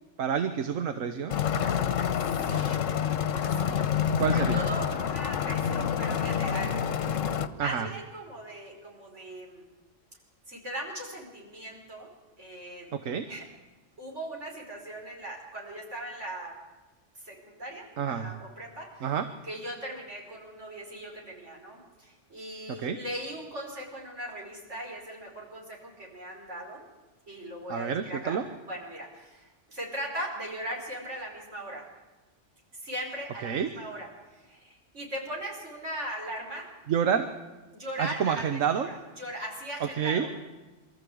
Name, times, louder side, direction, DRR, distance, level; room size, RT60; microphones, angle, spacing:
voice 1, 0.2-1.4 4.2-4.7 7.6-7.9 12.9-13.3 18.0-18.3 19.0-19.3 22.7-23.0 27.7-28.4 33.4-33.7 36.9-37.3 38.0-38.9 39.8-40.3, right 7 dB, 85° right, 8 dB, 1.4 m, -28 dB
sound 1, 1.3-7.5, left 8 dB, 75° left, 1.3 m, -27 dB
voice 2, 2.4-2.8 3.6-6.7 7.5-9.6 10.5-12.1 12.4-12.9 13.3-13.4 14.0-16.5 17.2-19.1 19.4-26.8 27.3-31.8 32.8-36.7 37.7-40.3, right 1 dB, 65° right, -2 dB, 5.4 m, -39 dB
23.5 x 13.5 x 8.6 m, 1.2 s
omnidirectional pair, 1.3 m